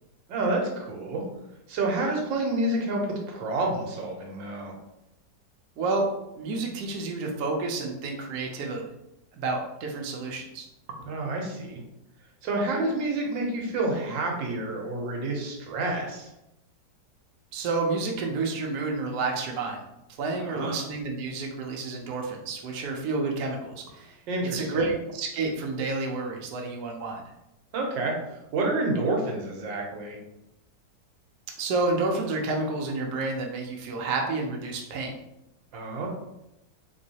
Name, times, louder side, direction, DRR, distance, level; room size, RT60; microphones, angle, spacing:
voice 1, 0.3-1.2 1.7-4.7 11.1-11.8 12.4-16.3 20.4-20.8 24.3-24.9 27.7-28.1 28.5-30.2 35.7-36.1, right 2 dB, 85° right, 0 dB, 1.5 m, -29 dB
voice 2, 5.8-6.1 6.3-8.8 9.3-10.7 17.5-19.8 20.2-24.2 24.5-27.2 31.6-35.2, right 3 dB, 70° right, 1 dB, 1.1 m, -30 dB
3.6 x 3.1 x 2.7 m, 0.87 s
omnidirectional pair, 2.0 m